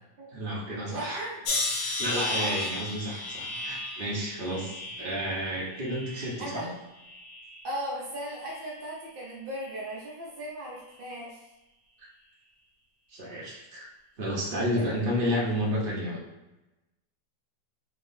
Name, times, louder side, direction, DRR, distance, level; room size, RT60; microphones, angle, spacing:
voice 1, 0.3-1.2 1.8-6.7 13.1-13.9 14.2-16.2, equal, 40° right, -5 dB, 0.9 m, -31 dB
voice 2, 0.9-1.6 2.3-2.6 6.4-6.7 7.6-11.4 14.7-15.1, right 1 dB, 65° right, -5 dB, 0.5 m, -37 dB
sound 1, 1.4-6.6 7.0-7.7 8.5-8.8, left 2 dB, 60° left, 0.9 m, -34 dB
3.7 x 2.8 x 2.6 m, 0.99 s
omnidirectional pair, 1.8 m